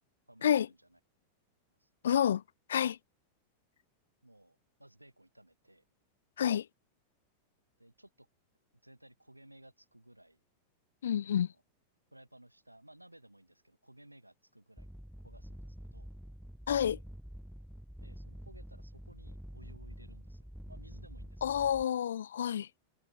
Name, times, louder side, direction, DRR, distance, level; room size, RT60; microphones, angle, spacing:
voice 1, 0.3-1.0 1.8-1.9 4.2-5.8 7.8-8.3 8.8-10.4 11.1-11.6 12.1-14.9 15.2-16.1 18.0-21.7, right 1 dB, 85° right, 3.1 m, -59 dB
voice 2, 2.0-2.4 2.7-3.0 6.4-6.6 11.0-11.5 16.7-17.0 21.4-22.7, left 9 dB, 65° left, 0.4 m, -29 dB
sound 1, 14.8-21.8, equal, ahead, 2.0 m, -48 dB
figure-of-eight pair, 90°, 0 cm